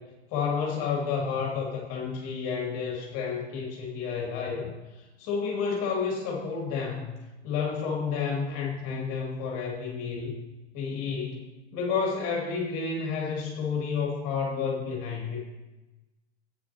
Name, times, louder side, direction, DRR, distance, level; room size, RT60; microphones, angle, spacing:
voice 1, 0.3-4.7 5.2-7.1 7.4-10.4 10.7-15.4, left 5 dB, 40° left, -2 dB, 2.5 m, -30 dB
14.0 x 9.0 x 2.9 m, 1.1 s
hypercardioid pair, 105°, 35 cm